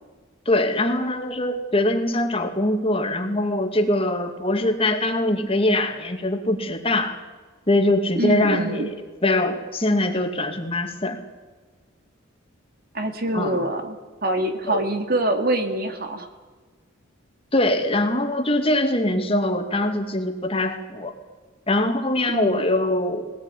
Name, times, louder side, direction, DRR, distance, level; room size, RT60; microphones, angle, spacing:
voice 1, 0.5-7.2 7.7-8.9 9.2-11.2 13.3-13.6 14.6-14.8 17.5-21.1 21.7-23.2, left 1 dB, 30° left, 5 dB, 2.4 m, -22 dB
voice 2, 8.2-8.9 12.9-16.3 22.3-22.6, right 1 dB, 50° right, 6 dB, 2.3 m, -25 dB
21.5 x 18.5 x 10.0 m, 1.4 s
head